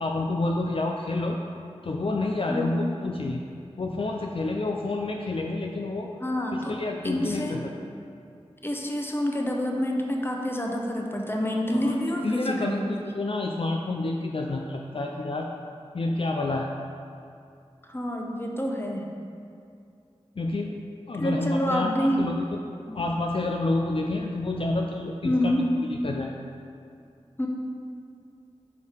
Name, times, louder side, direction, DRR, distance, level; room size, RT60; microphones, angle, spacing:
voice 1, 0.0-1.4 1.8-3.4 3.8-6.1 6.5-7.7 11.7-11.9 12.2-15.5 15.9-16.7 20.4-20.8 21.1-22.6 22.9-25.6 26.0-26.4, left 2 dB, 55° left, 1 dB, 0.4 m, -29 dB
voice 2, 2.5-2.8 6.2-6.8 7.0-7.6 8.6-13.0 17.9-19.1 21.2-22.3 22.8-23.0 25.2-25.7 27.4-27.5, equal, 20° left, 0 dB, 0.8 m, -27 dB
5.2 x 4.6 x 4.8 m, 2.4 s
wide cardioid pair, 40°, 11 cm